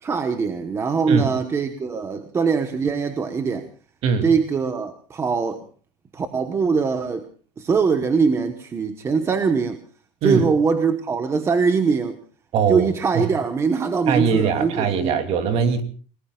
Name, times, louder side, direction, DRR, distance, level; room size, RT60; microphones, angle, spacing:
voice 1, 0.0-3.7 4.2-5.7 6.1-7.3 7.6-9.8 10.2-12.2 12.7-15.2, right 5 dB, 15° right, 1.2 m, -22 dB
voice 2, 12.5-13.3 14.1-15.8, right 6 dB, 40° right, 2.9 m, -21 dB
29.5 x 19.5 x 2.4 m
cardioid pair, 175°, 16 cm